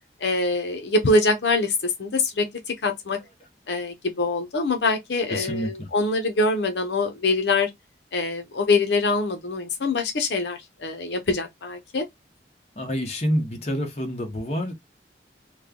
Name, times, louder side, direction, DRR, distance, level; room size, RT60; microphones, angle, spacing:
voice 1, 0.2-2.4 2.8-3.2 3.7-7.7 8.1-12.0, left 3 dB, 80° left, 0.7 m, -24 dB
voice 2, 5.3-5.9 12.7-14.7, equal, 35° left, 1.0 m, -27 dB
3.2 x 2.2 x 3.6 m
head